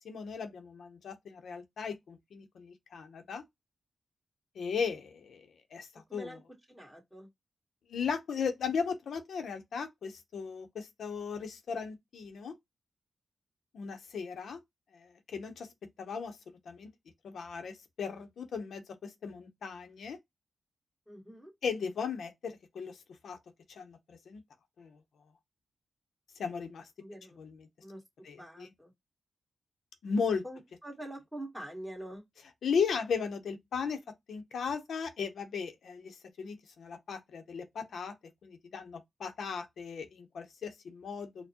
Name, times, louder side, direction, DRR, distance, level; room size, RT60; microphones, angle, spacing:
voice 1, 0.0-3.4 4.6-6.4 7.9-12.5 13.7-14.6 14.9-15.7 16.0-16.9 17.2-20.2 21.6-23.0 23.2-23.4 23.7-24.4 24.8-25.0 26.4-26.9 27.4-27.6 28.2-28.7 30.0-30.4 32.6-34.0 34.3-38.1 38.4-41.5, left 6 dB, 85° left, 0.7 m, -36 dB
voice 2, 6.7-7.3 21.1-21.5 27.0-27.4 27.8-28.0 28.4-28.9 30.4-32.2, right 1 dB, 5° right, 1.6 m, -45 dB
4.3 x 2.1 x 2.8 m
cardioid pair, 85°, 0 cm